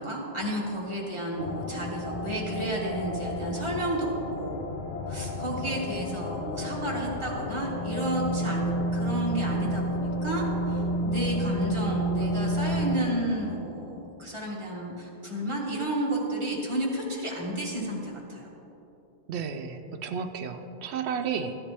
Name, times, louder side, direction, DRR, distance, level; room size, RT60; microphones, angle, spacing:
voice 1, 0.0-4.6 5.1-18.5, right 1 dB, 30° right, -4 dB, 1.9 m, -32 dB
sound 1, 1.4-13.0, equal, 50° left, 0.7 m, -30 dB
voice 2, 19.3-21.6, right 6 dB, 85° right, 6 dB, 0.9 m, -32 dB
13.0 x 10.0 x 3.4 m, 3.0 s
omnidirectional pair, 1.1 m